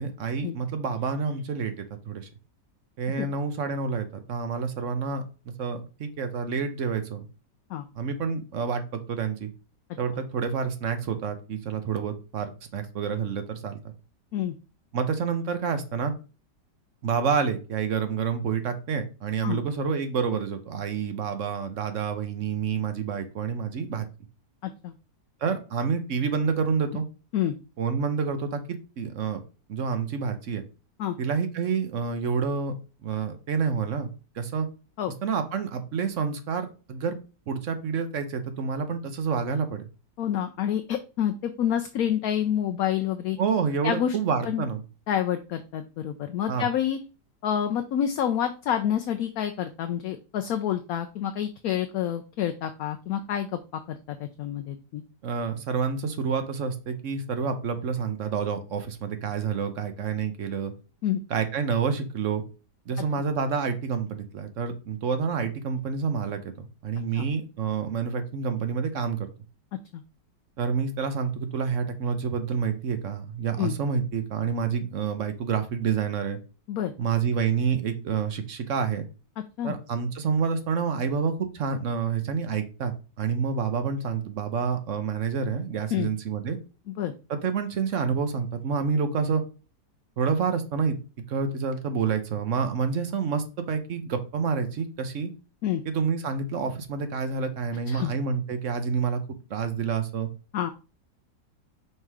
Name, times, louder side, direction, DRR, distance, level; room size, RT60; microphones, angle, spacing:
voice 1, 0.0-1.7 2.1-2.3 3.0-5.2 5.6-7.2 8.0-9.5 10.0-12.5 12.7-13.9 14.9-16.1 17.0-24.0 25.4-27.0 27.8-29.4 29.7-30.6 31.2-32.7 33.0-34.1 34.3-34.7 35.2-37.2 37.5-39.8 43.4-44.8 46.5-46.7 55.2-60.7 61.3-62.4 62.9-69.3 70.6-76.4 77.0-79.1 79.6-86.6 87.3-89.4 90.2-91.0 91.3-95.3 95.8-99.2 99.5-100.3, right 6 dB, 55° right, 8 dB, 1.0 m, -28 dB
voice 2, 24.6-24.9 27.3-27.6 31.0-31.2 35.0-35.1 40.2-43.4 43.8-44.2 44.4-44.6 45.1-47.0 47.4-55.0 61.0-61.2 63.2-63.3 67.2-67.3 69.9-70.0 73.6-73.7 76.7-76.9 79.6-79.8 85.9-86.1 86.9-87.1 95.6-95.8 97.9-98.1 100.5-100.7, left 10 dB, 70° left, 6 dB, 0.9 m, -28 dB
5.5 x 3.7 x 4.7 m, 0.33 s
omnidirectional pair, 1.9 m